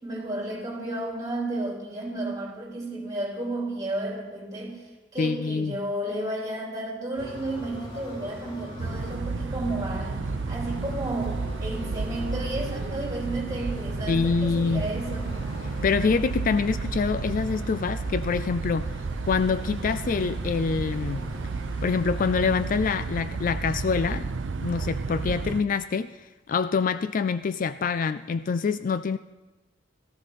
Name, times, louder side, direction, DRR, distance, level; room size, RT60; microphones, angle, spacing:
voice 1, 0.0-4.8 5.1-15.3, right 1 dB, 20° right, -2 dB, 3.9 m, -32 dB
voice 2, 5.2-5.8 14.1-14.8 15.8-18.9 19.2-21.3 21.8-24.3 24.6-26.1 26.5-29.2, left 5 dB, 45° left, 13 dB, 0.4 m, -25 dB
sound 1, 7.2-22.7, equal, 30° left, 3.6 m, -41 dB
sound 2, 8.8-25.6, right 4 dB, 85° right, 0.6 m, -32 dB
17.5 x 14.5 x 4.2 m, 1.1 s
head